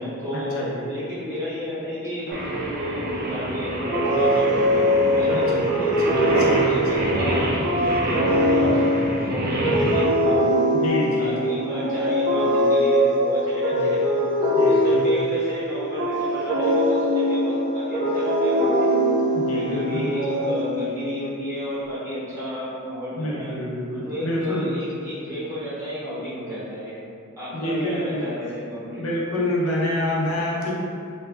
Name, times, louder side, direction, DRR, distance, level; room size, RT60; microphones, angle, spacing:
voice 1, 0.0-5.6 6.2-10.5 11.2-14.4 14.6-18.9 19.5-23.5 24.0-27.0 27.4-29.0, equal, 15° right, -13 dB, 0.7 m, -31 dB
voice 2, 0.5-0.9 5.3-7.2 10.7-11.3 13.7-13.9 14.6-15.3 19.1-20.2 23.2-24.7 27.5-28.3 29.0-30.7, left 1 dB, 70° left, -5 dB, 0.5 m, -28 dB
Singing, 2.3-10.0, right 1 dB, 45° right, 0.3 m, -27 dB
sound 1, 3.9-21.1, equal, 65° right, 0.8 m, -22 dB
2.6 x 2.1 x 2.2 m, 2.4 s
head